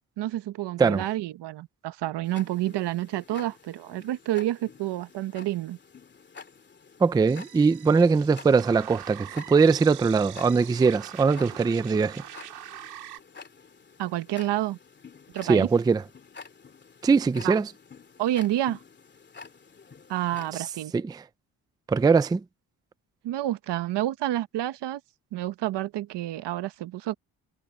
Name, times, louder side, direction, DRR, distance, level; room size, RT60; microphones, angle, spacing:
voice 1, 0.2-5.8 14.0-14.8 15.3-15.7 17.4-17.6 18.2-18.8 20.1-20.9 23.2-25.0 25.3-27.1, right 14 dB, 85° right, 1.0 m, -29 dB
Tick-tock, 2.2-20.6, left 5 dB, 25° left, 2.7 m, -49 dB
voice 2, 7.0-12.2 15.5-16.0 17.0-17.7 20.5-20.6 20.9-21.2 21.9-22.4, right 5 dB, 10° right, 0.3 m, -21 dB
sound 1, 7.3-13.2, right 11 dB, 70° right, 3.1 m, -43 dB
cardioid pair, 180°, 40 cm